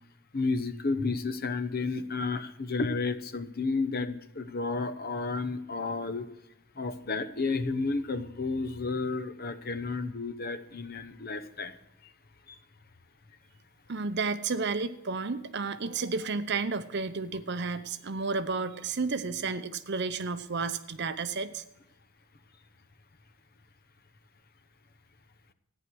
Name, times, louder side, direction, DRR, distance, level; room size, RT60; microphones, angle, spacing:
voice 1, 0.3-6.3 6.8-11.7, left 3 dB, 45° left, 11 dB, 0.9 m, -31 dB
voice 2, 13.9-21.6, right 4 dB, 50° right, 12 dB, 0.8 m, -32 dB
14.0 x 9.9 x 6.2 m, 0.92 s
head